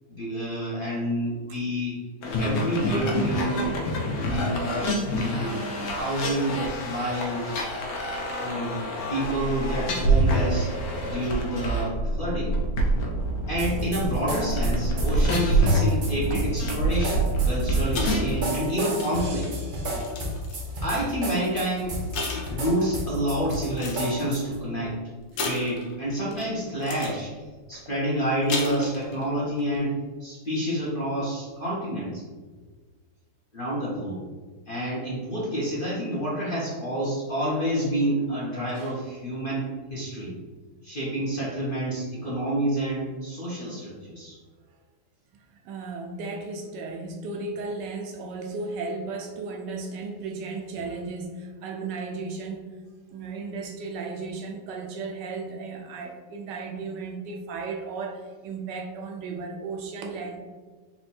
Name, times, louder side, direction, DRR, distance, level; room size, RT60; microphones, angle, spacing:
voice 1, 0.1-2.0 2.4-3.7 4.2-5.6 5.9-7.5 8.4-8.8 9.1-10.7 11.0-12.5 13.5-19.5 20.8-22.0 22.5-25.0 25.4-27.3 27.7-29.9 30.2-32.2 33.5-34.2 34.7-40.3 40.8-44.4, right 1 dB, 40° left, -7 dB, 0.9 m, -28 dB
sound 1, 2.2-18.5, right 1 dB, 85° left, 1.5 m, -26 dB
sound 2, 13.6-24.6, equal, 90° right, 0.4 m, -32 dB
sound 3, 17.9-20.8 21.6-21.7 22.1-23.0 23.5-24.2 25.4-26.5 26.8-27.2 28.3-29.3 29.6-29.8, left 3 dB, 65° left, 1.3 m, -34 dB
voice 2, 29.2-29.6 38.8-38.9 45.6-52.7 53.1-60.4, right 4 dB, 70° right, 2 dB, 1.3 m, -35 dB
4.4 x 2.5 x 4.2 m, 1.4 s
omnidirectional pair, 2.0 m